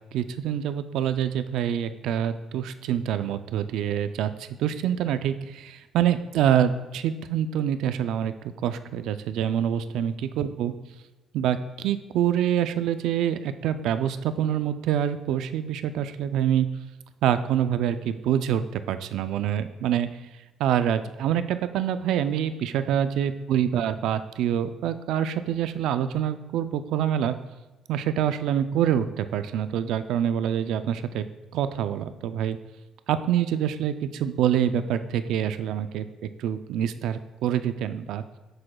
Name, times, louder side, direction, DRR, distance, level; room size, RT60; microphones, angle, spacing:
voice 1, 0.1-8.3 8.6-10.7 11.3-16.7 17.2-20.1 20.6-27.4 27.9-31.3 31.5-32.6 33.1-38.2, right 10 dB, 80° right, 11 dB, 0.3 m, -26 dB
7.6 x 6.1 x 2.2 m, 1.1 s
cardioid pair, 175°, 0 cm